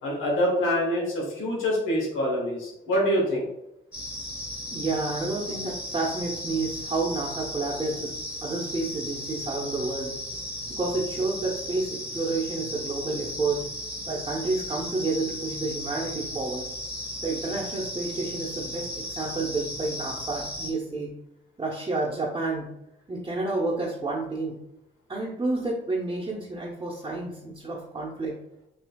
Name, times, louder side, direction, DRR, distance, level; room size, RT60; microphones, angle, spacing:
voice 1, 0.0-3.5, equal, 85° left, -2 dB, 1.4 m, -25 dB
sound 1, 3.9-20.7, left 1 dB, 5° right, 1.2 m, -36 dB
voice 2, 4.7-8.1 8.4-10.2 10.7-13.6 14.1-16.7 17.2-21.1 21.6-22.7 23.1-24.6 25.1-28.4, right 3 dB, 25° right, -5 dB, 0.9 m, -30 dB
6.1 x 2.7 x 2.3 m, 0.85 s
cardioid pair, 90°, 20 cm